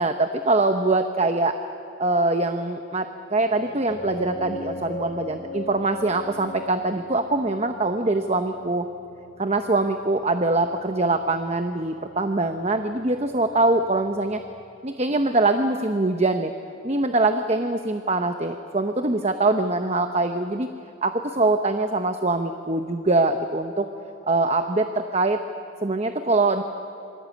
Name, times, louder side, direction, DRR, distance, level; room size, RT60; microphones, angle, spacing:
voice 1, 0.0-1.6 2.0-8.9 9.4-14.4 14.8-16.5 16.8-20.7 21.0-23.9 24.3-25.4 25.8-26.6, right 2 dB, 30° right, 7 dB, 0.9 m, -23 dB
sound 1, 3.4-14.6, left 1 dB, 55° left, 1.8 m, -40 dB
27.5 x 24.0 x 8.6 m, 2.9 s
head